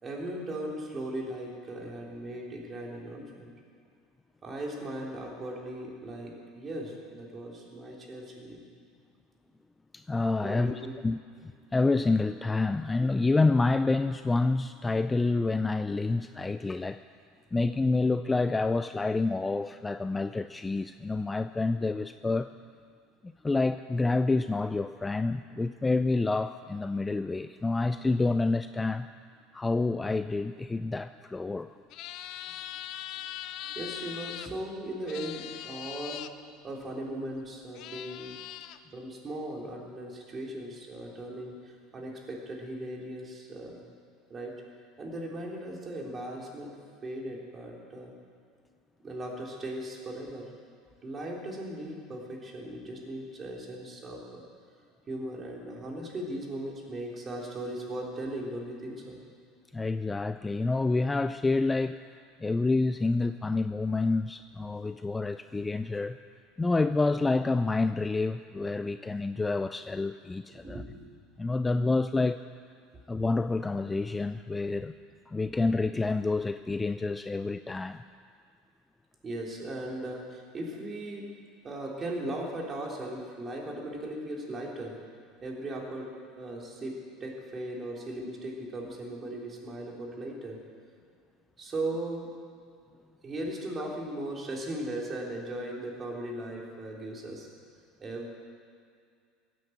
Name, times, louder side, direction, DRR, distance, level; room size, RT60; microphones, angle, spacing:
voice 1, 0.0-3.5 4.4-8.6 10.4-11.0 33.8-36.3 36.6-38.4 38.9-43.8 44.3-44.6 45.0-46.8 47.0-48.1 49.0-50.5 51.0-54.4 55.1-59.2 70.5-71.1 79.2-81.3 81.6-85.0 85.4-86.9 87.2-90.6 91.6-92.3 93.2-97.5 98.0-98.3, right 1 dB, 30° right, -1 dB, 3.7 m, -38 dB
voice 2, 9.9-17.0 17.5-22.5 23.4-29.1 29.5-31.7 59.7-62.0 62.4-66.2 66.6-70.8 71.4-72.4 73.1-74.9 75.3-78.0, left 3 dB, 15° left, 11 dB, 0.4 m, -28 dB
sound 1, 31.9-34.5 35.1-36.3 37.3-37.4 37.7-38.8, left 12 dB, 55° left, 0.7 m, -40 dB
16.5 x 9.3 x 8.0 m, 2.3 s
supercardioid pair, 115°, 0 cm